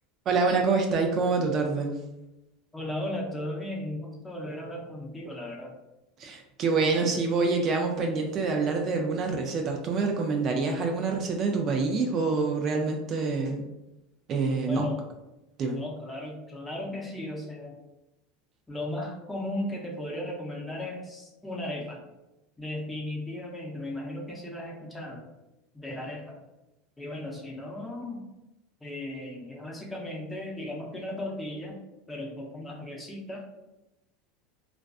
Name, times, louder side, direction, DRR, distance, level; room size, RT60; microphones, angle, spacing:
voice 1, 0.3-2.0 6.2-13.7 14.3-14.9 15.6-15.8, right 4 dB, 40° right, 2 dB, 0.3 m, -26 dB
voice 2, 2.7-5.7 14.7-15.0 15.7-17.7 18.7-22.0 22.6-25.2 25.7-26.4 27.0-28.2 28.8-31.8 32.1-33.4, left 1 dB, 10° left, -1 dB, 0.6 m, -36 dB
2.4 x 2.3 x 2.3 m, 0.97 s
supercardioid pair, 115°, 0 cm